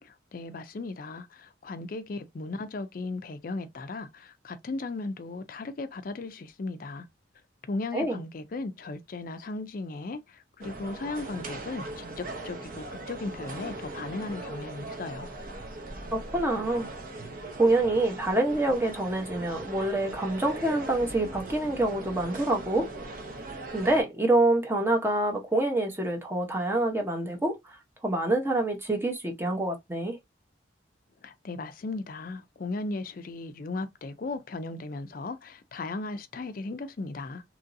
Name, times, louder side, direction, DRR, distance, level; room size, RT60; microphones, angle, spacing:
voice 1, 0.0-7.1 7.7-15.3 31.2-37.4, left 3 dB, 50° left, 0.4 m, -36 dB
sound 1, 10.6-24.0, right 2 dB, 50° right, 0.7 m, -39 dB
voice 2, 16.1-16.9 17.6-22.9 23.7-27.8 28.0-30.2, right 2 dB, 15° right, 0.7 m, -26 dB
3.0 x 2.6 x 2.6 m
head